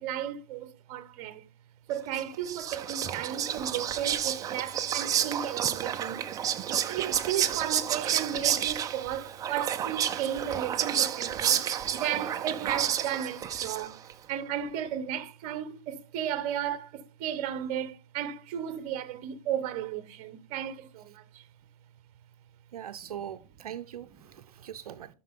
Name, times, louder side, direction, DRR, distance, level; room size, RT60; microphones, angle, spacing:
voice 1, 0.0-1.5 1.9-6.2 6.7-11.6 11.9-14.0 14.3-21.5 23.0-23.1 24.2-24.3, right 10 dB, 35° right, 1.0 m, -34 dB
Whispering, 2.1-14.1, right 9 dB, 20° right, 0.5 m, -30 dB
voice 2, 22.7-25.1, right 10 dB, 70° right, 0.6 m, -41 dB
12.0 x 4.6 x 3.6 m
hypercardioid pair, 125°, 19 cm